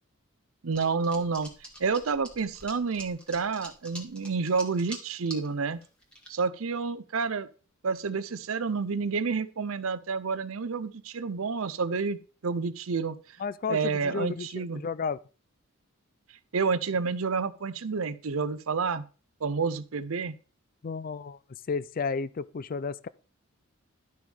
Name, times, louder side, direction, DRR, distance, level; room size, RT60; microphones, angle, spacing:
voice 1, 0.6-1.5 1.8-5.8 6.3-7.5 7.8-12.2 12.4-13.2 13.7-14.8 16.5-19.0 19.4-20.3, right 5 dB, 75° right, 0.6 m, -29 dB
sound 1, 0.7-5.5 5.8-6.3, right 1 dB, 5° left, 1.8 m, -44 dB
voice 2, 13.4-15.2 20.8-21.4 21.7-23.1, left 5 dB, 40° left, 0.4 m, -32 dB
11.5 x 6.2 x 3.5 m
head